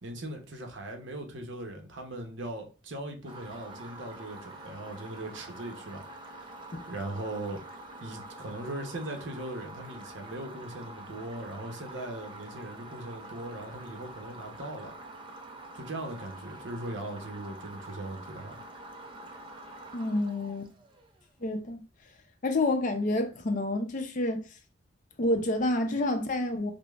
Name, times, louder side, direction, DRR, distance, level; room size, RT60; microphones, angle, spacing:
voice 1, 0.0-6.0 6.9-7.6 8.0-14.9 15.7-18.6, right 1 dB, 65° right, 0.7 m, -39 dB
sound 1, 3.3-21.2, right 2 dB, 25° right, 0.4 m, -46 dB
voice 2, 19.9-20.7 21.4-21.8 22.4-24.4 25.2-26.7, left 2 dB, 40° left, 0.4 m, -28 dB
5.0 x 2.0 x 2.3 m
head